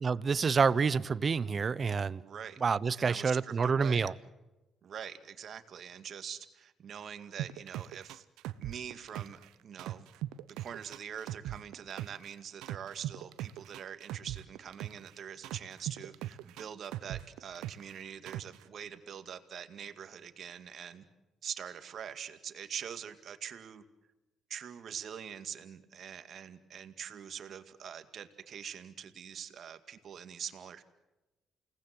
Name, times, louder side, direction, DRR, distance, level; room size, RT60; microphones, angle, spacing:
voice 1, 0.0-2.2 2.6-4.1, right 5 dB, 45° right, 0.9 m, -28 dB
voice 2, 2.2-2.6 2.9-4.1 4.8-8.2 8.6-10.1 10.5-21.0 21.4-23.8 24.5-30.8, right 8 dB, 60° right, 2.1 m, -44 dB
sound 1, 7.4-9.5 9.8-12.3 12.6-15.1 15.4-17.9 18.3-18.6, right 14 dB, 85° right, 0.8 m, -39 dB
29.0 x 19.0 x 7.9 m
supercardioid pair, 65°, 0 cm